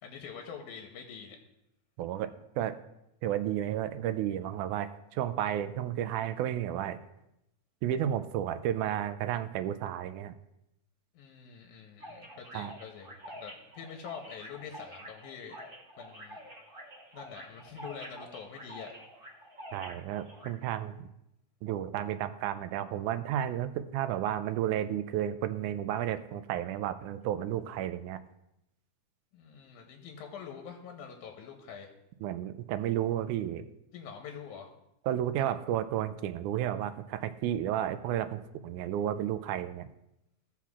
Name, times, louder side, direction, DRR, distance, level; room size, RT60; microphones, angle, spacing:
voice 1, 0.0-1.4 11.1-15.6 16.0-16.4 17.1-18.9 29.3-31.9 33.9-34.7, left 7 dB, 90° left, 3 dB, 2.3 m, -45 dB
voice 2, 2.0-2.3 2.6-2.7 3.2-7.0 7.8-10.3 12.5-12.7 19.7-21.0 21.6-28.2 32.2-33.6 35.1-39.9, right 11 dB, 85° right, 11 dB, 2.0 m, -32 dB
sound 1, 12.0-20.5, equal, 55° right, 0.5 m, -48 dB
16.0 x 5.7 x 2.4 m, 0.85 s
omnidirectional pair, 3.4 m